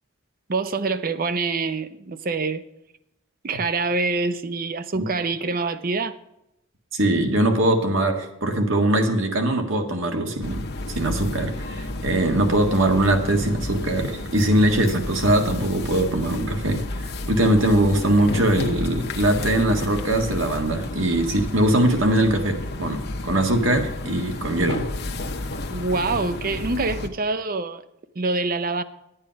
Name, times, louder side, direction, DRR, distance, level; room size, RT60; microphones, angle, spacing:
voice 1, 0.5-2.6 3.4-6.2 25.7-27.8 28.2-28.8, right 3 dB, 45° right, 0.6 m, -25 dB
voice 2, 6.9-10.6 10.9-24.8, right 1 dB, 70° right, 1.7 m, -21 dB
sound 1, 10.4-27.1, left 2 dB, 50° left, 0.9 m, -31 dB
11.0 x 8.9 x 5.2 m
head